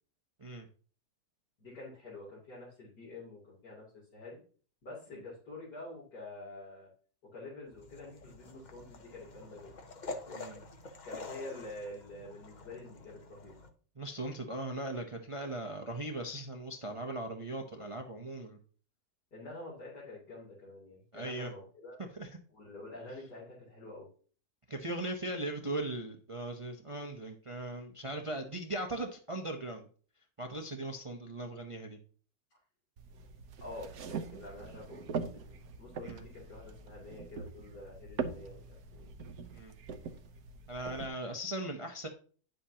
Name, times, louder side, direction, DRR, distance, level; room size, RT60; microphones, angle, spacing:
voice 1, 1.6-4.4 4.8-6.9 7.3-9.7 11.0-13.6 19.3-22.0 22.5-24.1 33.6-39.1, left 2 dB, 80° left, -6 dB, 3.9 m, -47 dB
sound 1, 7.7-13.7, left 3 dB, 35° left, 0.8 m, -47 dB
voice 2, 10.3-10.6 14.0-18.6 21.1-21.5 22.1-22.3 24.7-29.9 30.4-32.0 36.0-36.2 39.5-39.8 40.7-42.1, right 1 dB, 25° right, 3 dB, 0.7 m, -39 dB
sound 2, 33.0-41.1, right 5 dB, 70° right, 1.3 m, -42 dB
9.8 x 8.0 x 2.9 m, 0.41 s
omnidirectional pair, 1.7 m